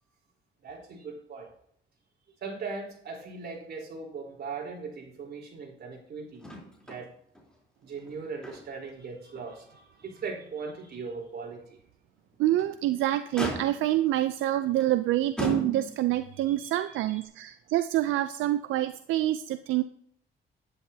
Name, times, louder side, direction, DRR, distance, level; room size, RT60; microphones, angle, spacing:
voice 1, 0.6-1.5 2.4-6.4 6.8-7.1 7.8-11.6 16.4-17.2, right 4 dB, 55° right, -1 dB, 4.1 m, -39 dB
Motor vehicle (road), 6.4-7.0 7.3-7.5 8.0-8.9 9.3-9.5 10.0-10.1 12.3-12.8 13.4-14.0 14.8-15.0 15.4-16.2 17.2-17.3, equal, 5° left, 3.6 m, -36 dB
voice 2, 12.4-19.8, right 14 dB, 90° right, 11 dB, 0.5 m, -27 dB
11.0 x 10.5 x 2.8 m, 0.66 s
cardioid pair, 90°, 20 cm